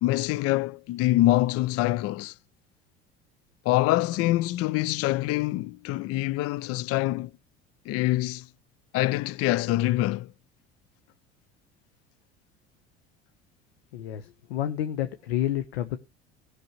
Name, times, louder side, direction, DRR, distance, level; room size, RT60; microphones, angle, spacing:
voice 1, 0.0-2.3 3.6-7.3 7.9-8.5 8.9-10.3, left 17 dB, 50° left, 0.5 m, -25 dB
voice 2, 13.9-16.0, left 12 dB, 75° left, 0.8 m, -29 dB
19.0 x 6.5 x 3.0 m
hypercardioid pair, 70°, 31 cm